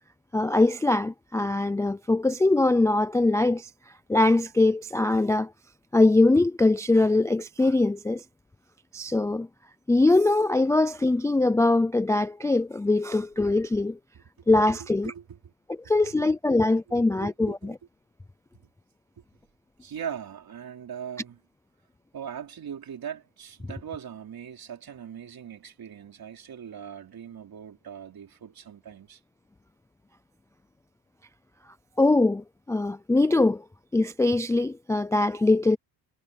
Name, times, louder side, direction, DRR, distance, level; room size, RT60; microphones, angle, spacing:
voice 1, 0.3-3.7 4.1-5.5 5.9-8.2 8.9-9.5 9.9-14.0 14.5-15.1 15.9-17.7 32.0-33.6 33.9-35.8, left 2 dB, 5° left, 0.3 m, -22 dB
voice 2, 14.8-15.5 16.0-16.4 17.1-17.7 19.2-19.3 19.8-21.4 22.1-29.2, right 8 dB, 50° right, 3.8 m, -40 dB
cardioid pair, 125°, 44 cm